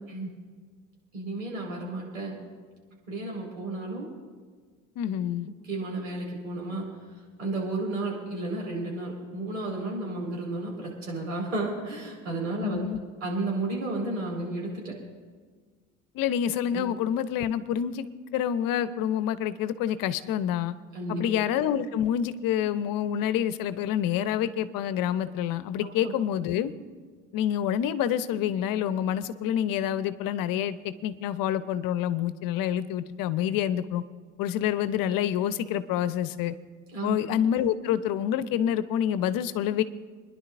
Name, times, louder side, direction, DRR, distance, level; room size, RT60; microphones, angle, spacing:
voice 1, 1.1-2.4 3.1-4.1 5.6-6.9 7.4-12.8 13.2-14.9 16.7-16.8 20.9-21.2 25.8-26.1 36.9-37.2, right 2 dB, 90° right, -2 dB, 5.0 m, -32 dB
voice 2, 5.0-5.5 12.6-13.0 16.1-18.0 18.3-20.7 21.1-26.7 27.3-34.0 34.4-36.5 37.0-39.8, left 10 dB, 60° left, 13 dB, 1.0 m, -27 dB
29.0 x 11.0 x 2.7 m, 1.5 s
hypercardioid pair, 60°, 39 cm